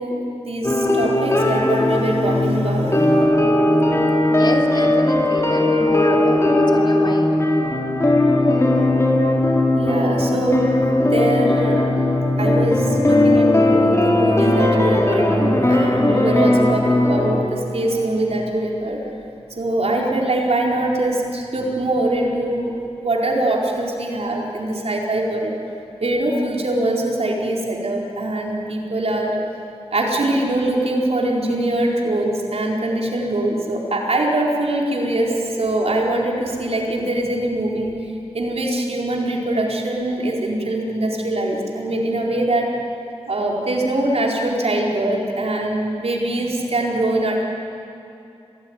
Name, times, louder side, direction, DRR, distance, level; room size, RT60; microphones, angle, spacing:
voice 1, 0.0-3.1 9.7-11.8 12.4-19.1 19.6-22.7 23.0-25.6 26.0-29.4 29.9-42.7 43.3-47.4, right 1 dB, 70° right, -2 dB, 4.5 m, -22 dB
sound 1, 0.6-17.5, left 1 dB, 25° left, 3.3 m, -18 dB
voice 2, 4.3-7.3, left 1 dB, 45° left, 1 dB, 3.4 m, -28 dB
26.0 x 18.5 x 9.7 m, 2.7 s
wide cardioid pair, 80°, 11 cm